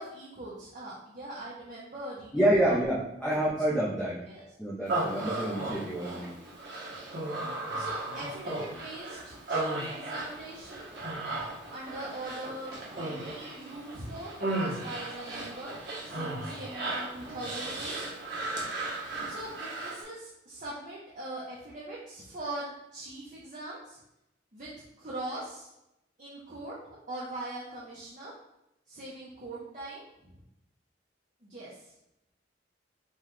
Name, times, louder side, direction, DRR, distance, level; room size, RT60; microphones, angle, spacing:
voice 1, 0.0-2.8 3.3-3.4 4.2-4.4 7.3-7.5 7.7-10.9 11.7-15.7 16.0-18.0 19.2-24.0 24.5-24.7 25.0-25.7 26.2-26.8 27.1-28.3 28.9-30.4 31.4-31.9, right 1 dB, 45° right, -7 dB, 0.8 m, -41 dB
voice 2, 2.3-4.2 4.6-6.3, right 1 dB, 5° left, -8 dB, 0.6 m, -27 dB
Human voice, 4.9-20.0, right 2 dB, 65° right, 1.1 m, -35 dB
5.5 x 2.3 x 3.1 m, 0.87 s
head